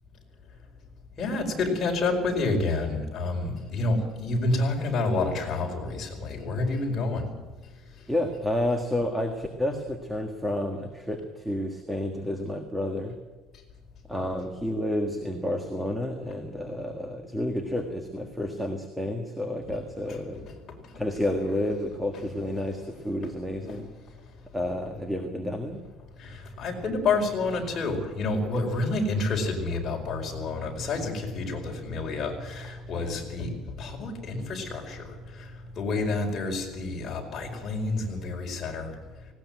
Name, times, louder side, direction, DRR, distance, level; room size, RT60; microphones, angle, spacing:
voice 1, 1.2-7.3 20.1-20.2 20.4-20.6 20.9-21.0 23.7-23.8 26.2-39.0, left 3 dB, 30° left, 0 dB, 5.0 m, -29 dB
voice 2, 8.1-13.2 14.1-20.5 20.9-23.8 24.5-25.8, left 1 dB, 5° right, 5 dB, 1.6 m, -30 dB
19.0 x 18.0 x 9.3 m, 1.3 s
cardioid pair, 170°, 0 cm